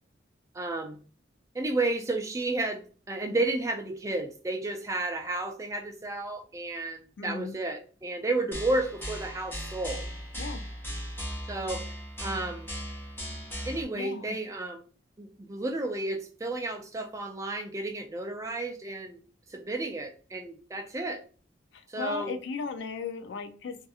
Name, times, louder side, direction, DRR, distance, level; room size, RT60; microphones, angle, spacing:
voice 1, 0.5-1.0 1.5-2.8 3.1-10.1 11.4-11.9 12.2-12.7 13.6-14.8 15.2-19.2 19.5-21.2 21.9-22.3, right 2 dB, 15° right, 5 dB, 0.3 m, -32 dB
voice 2, 7.2-7.5 10.4-10.6 13.9-14.4 21.7-23.8, left 4 dB, 70° left, 8 dB, 0.4 m, -36 dB
sound 1, 8.5-13.8, equal, 10° left, 0.7 m, -37 dB
2.7 x 2.5 x 2.3 m, 0.40 s
head